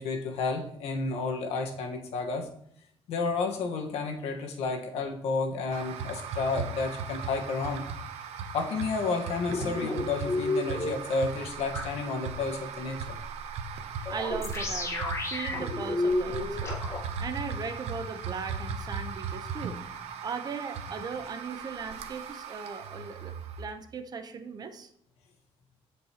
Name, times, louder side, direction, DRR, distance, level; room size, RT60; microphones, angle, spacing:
voice 1, 0.0-2.5 3.1-7.9 8.5-13.2, left 4 dB, 85° left, 3 dB, 1.5 m, -31 dB
sound 1, 5.7-23.7, right 5 dB, 90° right, 0.9 m, -38 dB
sound 2, 9.5-10.9 11.7-11.8 14.1-17.0, left 2 dB, 25° left, 1.6 m, -31 dB
voice 2, 14.1-19.8 20.2-24.9, right 5 dB, 40° right, 8 dB, 0.9 m, -38 dB
15.0 x 5.3 x 3.0 m, 0.72 s
cardioid pair, 135°, 11 cm